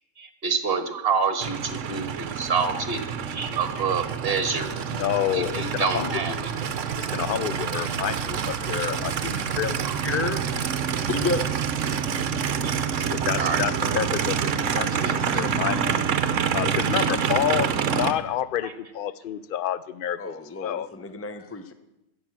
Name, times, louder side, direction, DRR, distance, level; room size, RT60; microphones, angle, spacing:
voice 1, 0.2-3.0 3.3-4.8 5.3-6.5 9.8-10.0 12.6-12.7 13.4-13.9 15.0-15.4 15.7-15.8 16.3-16.4 18.6-18.7, right 5 dB, 45° right, 7 dB, 1.5 m, -28 dB
Aircraft, 1.4-18.1, right 7 dB, 65° right, 1.1 m, -27 dB
voice 2, 4.9-6.5 7.0-9.8 12.9-16.1 16.5-17.7 18.0-20.9, left 11 dB, 65° left, 16 dB, 0.5 m, -29 dB
voice 3, 10.0-10.4 11.1-11.5 20.2-21.7, left 3 dB, 15° left, 9 dB, 0.6 m, -30 dB
14.0 x 8.1 x 7.4 m, 0.93 s
omnidirectional pair, 1.4 m